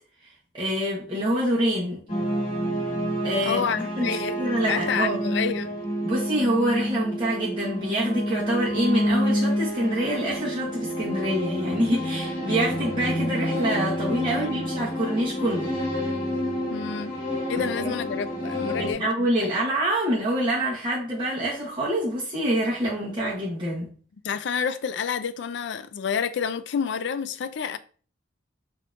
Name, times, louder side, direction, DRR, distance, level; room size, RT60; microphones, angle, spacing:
voice 1, 0.5-2.0 3.2-3.6 4.0-4.1 4.4-5.2 6.0-15.7 17.8-17.9 18.8-23.9, right 1 dB, 25° right, 1.1 m, -26 dB
sound 1, 2.1-18.9, equal, 35° left, 1.6 m, -28 dB
voice 2, 3.4-4.4 4.7-5.8 14.4-14.6 16.7-17.2 17.5-19.5 24.2-27.8, left 6 dB, 65° left, 0.4 m, -29 dB
5.2 x 2.8 x 2.5 m
head